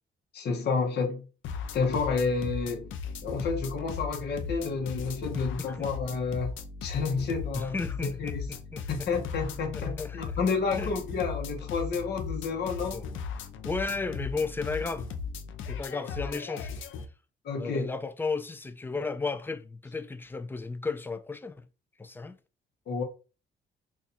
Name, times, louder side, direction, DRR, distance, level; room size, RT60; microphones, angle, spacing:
voice 1, 0.3-1.2 1.7-2.9 3.2-6.5 6.8-7.7 8.0-8.4 8.9-13.0 16.0-16.1 17.4-17.9 22.9-23.0, left 4 dB, 55° left, 0.9 m, -30 dB
sound 1, 1.4-17.1, left 6 dB, 80° left, 0.5 m, -37 dB
voice 2, 5.3-5.9 7.5-9.1 9.7-10.4 10.8-10.9 12.9-13.1 13.6-15.1 15.7-16.7 17.5-21.7 22.0-22.4, left 4 dB, 10° left, 0.4 m, -34 dB
2.6 x 2.4 x 4.1 m
cardioid pair, 90°, 20 cm